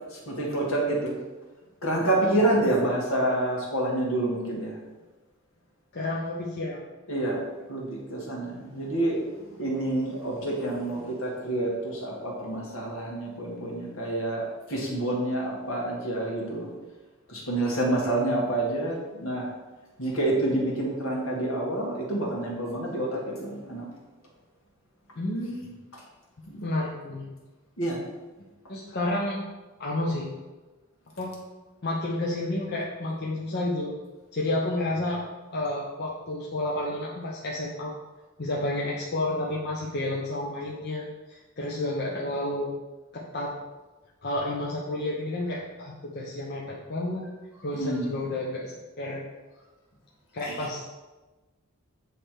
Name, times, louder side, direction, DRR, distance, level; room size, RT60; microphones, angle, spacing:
voice 1, 0.1-1.2 1.8-4.8 7.1-7.4 7.7-16.7 17.3-19.5 20.0-23.9 25.9-26.0 26.5-26.6 27.8-28.0 47.7-48.1 50.4-50.7, right 1 dB, 75° left, -2 dB, 1.8 m, -28 dB
voice 2, 5.9-6.8 25.2-25.7 26.6-27.2 28.7-29.4 29.8-30.3 31.2-31.3 31.8-33.9 34.3-35.2 35.5-37.9 38.4-42.7 43.1-43.5 44.2-47.3 47.6-49.2 50.3-50.8, left 1 dB, 50° left, -3 dB, 0.7 m, -30 dB
8.2 x 3.3 x 4.5 m, 1.2 s
head